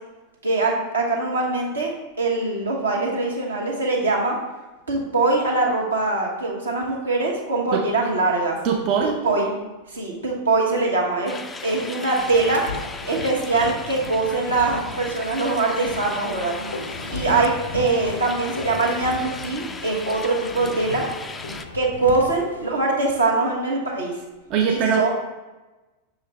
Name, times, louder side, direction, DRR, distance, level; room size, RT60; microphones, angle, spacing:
voice 1, 0.4-1.9 2.2-4.3 4.9-8.6 9.0-9.5 9.9-11.4 11.6-12.6 13.0-16.5 17.1-21.0 21.7-24.1 24.7-25.1, right 3 dB, 75° right, -2 dB, 1.2 m, -22 dB
voice 2, 8.6-9.2 24.5-25.1, right 6 dB, 40° right, 1 dB, 0.5 m, -21 dB
sound 1, 11.3-21.7, left 3 dB, 15° left, 0.4 m, -37 dB
sound 2, 12.2-22.8, left 2 dB, 70° left, 0.6 m, -36 dB
6.1 x 4.8 x 3.3 m, 1.1 s
figure-of-eight pair, 90°, 0 cm